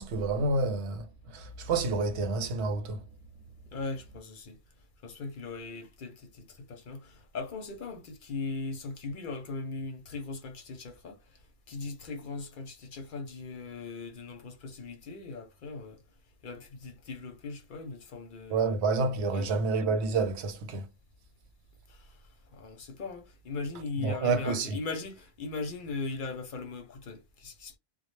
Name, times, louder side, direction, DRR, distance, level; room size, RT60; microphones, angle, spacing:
voice 1, 0.0-3.0 18.5-20.9 24.0-24.8, right 3 dB, 85° right, 0.9 m, -29 dB
voice 2, 3.7-4.6 5.0-11.2 11.7-16.0 16.4-18.8 19.3-19.5 21.9-22.2 22.5-27.8, left 3 dB, 55° left, 0.7 m, -39 dB
2.1 x 2.0 x 3.0 m
omnidirectional pair, 1.1 m